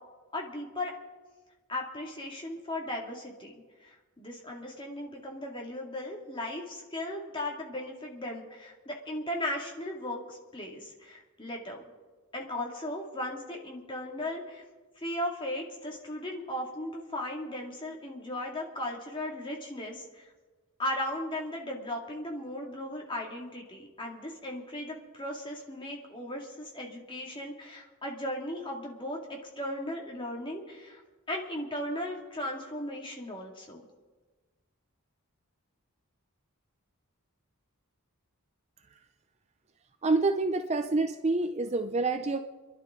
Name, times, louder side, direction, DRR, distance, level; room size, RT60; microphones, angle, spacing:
voice 1, 0.3-0.9 1.7-3.5 3.8-11.8 12.3-14.6 15.0-20.2 20.8-29.2 29.6-31.0 31.3-33.8, left 1 dB, 20° left, 0 dB, 2.2 m, -37 dB
voice 2, 40.0-42.4, right 3 dB, 30° right, 7 dB, 0.5 m, -27 dB
29.5 x 11.5 x 3.7 m, 1.3 s
head